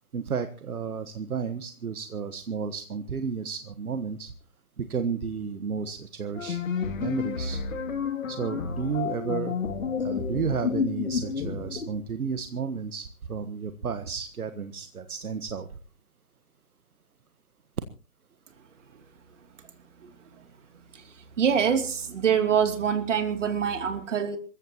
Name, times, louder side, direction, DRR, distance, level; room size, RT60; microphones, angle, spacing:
voice 1, 0.1-4.3 4.8-6.6 7.0-7.6 8.3-9.6 10.0-15.7, right 6 dB, 70° right, 9 dB, 1.5 m, -32 dB
sound 1, 6.3-12.0, left 6 dB, 60° left, 2.5 m, -30 dB
voice 2, 21.4-24.4, right 7 dB, 55° right, 7 dB, 2.9 m, -25 dB
27.0 x 15.0 x 3.0 m, 0.39 s
hypercardioid pair, 150°, 45 cm